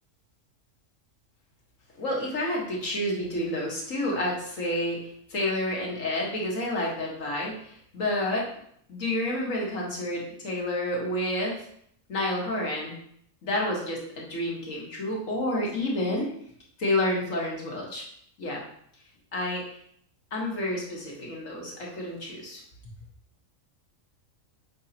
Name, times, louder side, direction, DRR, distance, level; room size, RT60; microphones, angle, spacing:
voice 1, 2.0-8.5 8.9-11.6 12.1-12.9 13.4-16.3 16.8-18.0 18.4-18.6 19.3-19.6 20.3-22.6, left 1 dB, 85° left, -2 dB, 2.0 m, -29 dB
7.4 x 5.1 x 2.9 m, 0.68 s
omnidirectional pair, 1.3 m